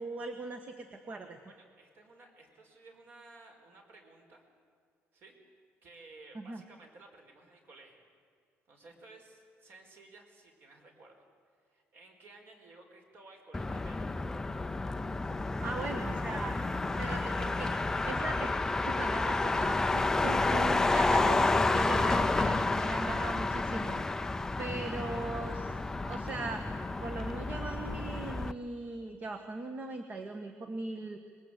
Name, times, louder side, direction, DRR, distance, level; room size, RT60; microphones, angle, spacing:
voice 1, 0.0-1.4 6.3-6.6 15.6-16.6 17.0-18.6 18.9-24.0 24.6-25.8 26.0-26.6 27.0-31.2, right 3 dB, 30° right, 7 dB, 1.4 m, -39 dB
voice 2, 1.4-4.4 5.1-5.4 5.8-8.0 8.7-11.1 11.6-14.0, right 2 dB, 50° right, 3 dB, 4.8 m, -55 dB
Motor vehicle (road), 13.5-28.5, left 3 dB, 10° left, 0.5 m, -30 dB
25.5 x 21.5 x 8.3 m, 2.3 s
cardioid pair, 160°, 5 cm